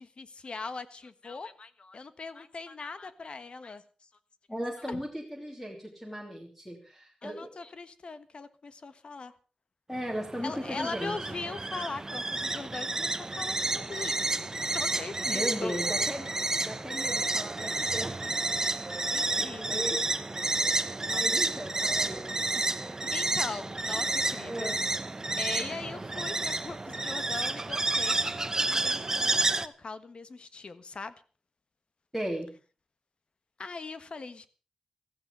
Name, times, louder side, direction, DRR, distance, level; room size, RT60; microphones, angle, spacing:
voice 1, 0.0-3.8 4.9-5.0 7.2-9.3 10.4-14.1 14.7-15.8 19.1-19.9 21.1-21.2 21.5-21.6 22.8-24.8 25.4-31.1 33.6-34.5, left 4 dB, 50° left, 12 dB, 1.4 m, -40 dB
voice 2, 4.5-7.5 9.9-11.4 15.2-16.3 16.6-18.2 19.3-20.0 21.1-22.2 22.5-23.1 24.0-24.2 24.5-24.8 25.1-25.3 32.1-32.5, equal, 5° left, 0 dB, 3.0 m, -37 dB
sound 1, 9.9-29.7, right 2 dB, 25° right, 0.9 m, -30 dB
15.5 x 15.0 x 5.3 m, 0.37 s
wide cardioid pair, 140°, 2 cm